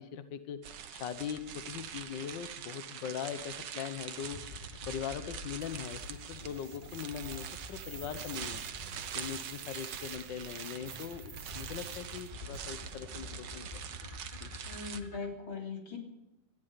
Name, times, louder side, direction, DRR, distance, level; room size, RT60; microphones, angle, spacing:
voice 1, 0.0-4.4 4.9-13.8 14.4-14.5, left 8 dB, 70° left, 10 dB, 1.0 m, -41 dB
sound 1, 0.6-15.0, right 8 dB, 75° right, 1.0 m, -44 dB
sound 2, 4.2-15.3, left 2 dB, 15° left, 2.4 m, -47 dB
sound 3, 5.6-12.8, right 6 dB, 45° right, 1.4 m, -51 dB
voice 2, 14.7-16.0, left 4 dB, 40° left, 1 dB, 3.8 m, -40 dB
19.0 x 14.0 x 5.2 m, 0.93 s
omnidirectional pair, 3.3 m